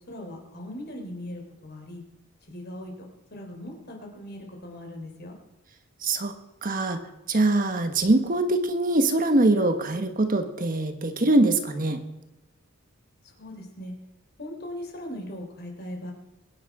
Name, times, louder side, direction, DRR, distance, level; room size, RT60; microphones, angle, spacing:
voice 1, 0.0-2.0 2.4-5.4 13.2-13.9 14.4-16.1, left 1 dB, 50° left, 2 dB, 3.9 m, -39 dB
voice 2, 6.0-6.3 6.6-7.0 7.3-12.0, right 2 dB, 40° right, 7 dB, 1.2 m, -23 dB
22.5 x 9.9 x 4.9 m, 1.1 s
head